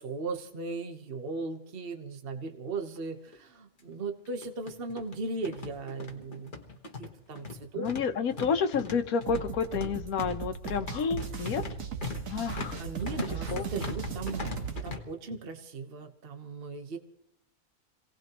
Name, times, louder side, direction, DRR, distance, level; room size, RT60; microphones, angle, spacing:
voice 1, 0.0-6.5 7.0-7.9 12.8-17.0, right 3 dB, 40° right, 5 dB, 1.3 m, -37 dB
sound 1, 3.0-3.1 3.3-3.4 4.3-15.0, left 4 dB, 35° left, 1.5 m, -41 dB
voice 2, 7.8-11.6 12.3-12.8 13.5-13.6, left 6 dB, 75° left, 8 dB, 1.4 m, -30 dB
sound 2, 9.3-14.9, right 7 dB, 65° right, 1.5 m, -37 dB
26.5 x 18.0 x 3.0 m, 0.76 s
omnidirectional pair, 1.5 m